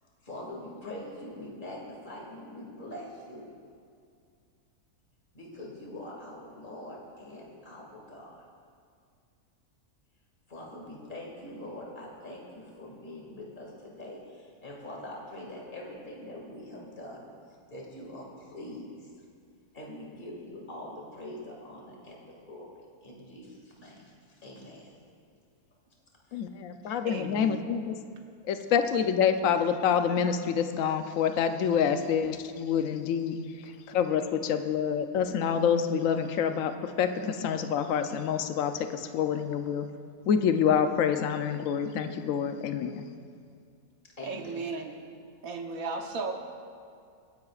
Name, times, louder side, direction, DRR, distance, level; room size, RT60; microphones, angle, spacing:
voice 1, 0.0-3.5 5.3-8.4 10.5-17.3 17.7-19.1 19.7-24.9 26.3-26.4 26.8-27.0 44.2-44.6, left 1 dB, 30° left, -2 dB, 2.3 m, -43 dB
voice 2, 26.3-28.0 28.5-33.4 33.9-39.9 40.3-43.0, left 7 dB, 65° left, 8 dB, 1.0 m, -27 dB
voice 3, 27.0-27.7 44.2-44.9 45.4-46.3, right 4 dB, 65° right, 3 dB, 1.5 m, -35 dB
25.0 x 10.5 x 2.4 m, 2.3 s
omnidirectional pair, 1.6 m